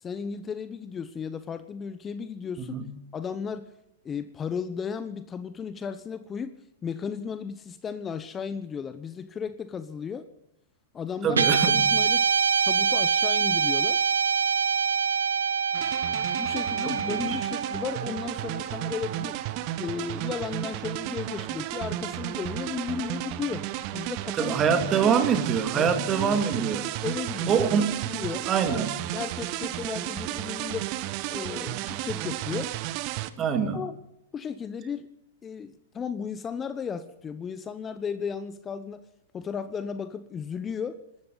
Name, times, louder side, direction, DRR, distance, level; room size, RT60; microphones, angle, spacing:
voice 1, 0.0-2.8 3.1-3.7 4.0-6.6 6.8-10.3 10.9-12.3 12.7-14.1 16.1-19.4 19.8-24.6 24.9-25.2 25.7-26.7 27.0-27.7 28.0-28.8 29.1-30.9 31.3-32.7 33.7-34.0 34.3-35.1 35.4-39.0 39.3-41.0, left 6 dB, 20° left, 12 dB, 0.9 m, -35 dB
voice 2, 2.6-2.9 11.2-11.9 16.9-17.4 24.4-26.9 27.5-27.9 28.5-29.0 33.4-33.8, right 6 dB, 30° right, 7 dB, 2.2 m, -25 dB
Guitar, 11.3-19.8, right 6 dB, 80° right, 1.0 m, -25 dB
sound 1, 15.7-33.3, right 14 dB, 45° right, 1.0 m, -33 dB
26.0 x 13.0 x 4.0 m, 0.80 s
hypercardioid pair, 105°, 0 cm